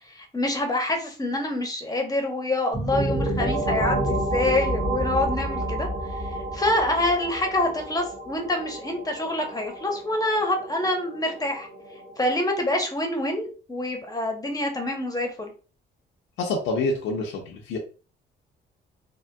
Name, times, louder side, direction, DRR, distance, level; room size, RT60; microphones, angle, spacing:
voice 1, 0.2-5.9 6.5-11.7 12.2-15.5, left 1 dB, 20° left, 3 dB, 0.8 m, -26 dB
sound 1, 2.7-12.3, right 1 dB, 35° right, 1.4 m, -30 dB
voice 2, 16.4-17.8, left 3 dB, 80° left, -1 dB, 0.6 m, -27 dB
3.6 x 2.2 x 2.2 m, 0.36 s
cardioid pair, 90°, 20 cm